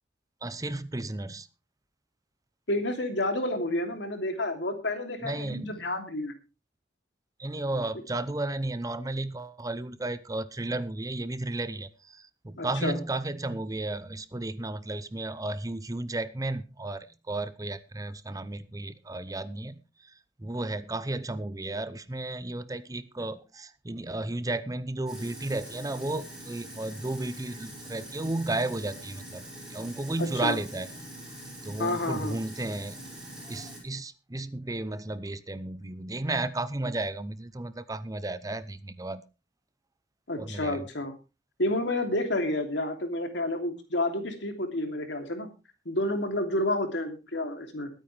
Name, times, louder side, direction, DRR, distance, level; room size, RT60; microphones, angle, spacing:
voice 1, 0.4-1.5 5.2-5.7 7.4-19.7 20.4-29.4 29.7-30.9 31.6-33.0 33.5-39.2 40.4-40.8, right 2 dB, 20° right, 0.7 m, -33 dB
voice 2, 2.7-6.3 12.6-13.0 30.2-30.6 31.8-32.4 40.3-41.1 41.6-45.5 45.8-47.9, left 1 dB, 75° left, 2.9 m, -30 dB
Sink (filling or washing), 25.1-33.8, right 1 dB, 5° right, 6.2 m, -44 dB
22.0 x 9.1 x 3.3 m
head